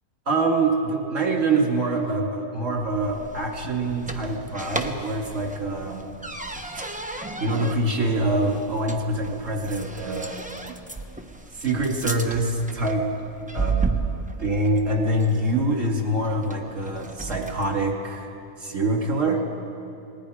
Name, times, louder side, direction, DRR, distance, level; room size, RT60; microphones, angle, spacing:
voice 1, 0.3-6.0 7.4-10.4 10.7-10.8 11.6-13.1 13.5-13.9 14.4-18.3 18.6-19.5, right 2 dB, 55° right, 0 dB, 2.7 m, -25 dB
sound 1, 2.7-17.8, right 3 dB, 5° right, 0.8 m, -34 dB
28.5 x 20.0 x 5.0 m, 2.7 s
omnidirectional pair, 1.6 m